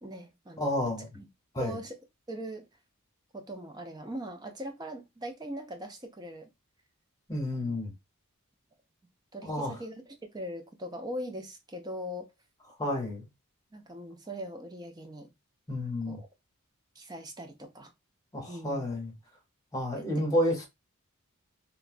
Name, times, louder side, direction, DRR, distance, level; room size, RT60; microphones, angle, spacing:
voice 1, 0.0-1.3 1.6-2.0 2.3-2.7 3.3-6.5 7.6-7.8 9.3-9.9 10.2-12.3 13.7-15.3 16.1-16.3 17.0-17.9 18.5-18.8 20.2-20.3, equal, 20° right, 0.4 m, -40 dB
voice 2, 0.6-1.0 1.5-1.8 7.3-7.9 9.4-9.8 12.8-13.2 15.7-16.2 18.3-19.1 19.7-20.7, left 1 dB, 15° left, 0.9 m, -30 dB
3.1 x 2.1 x 2.4 m
head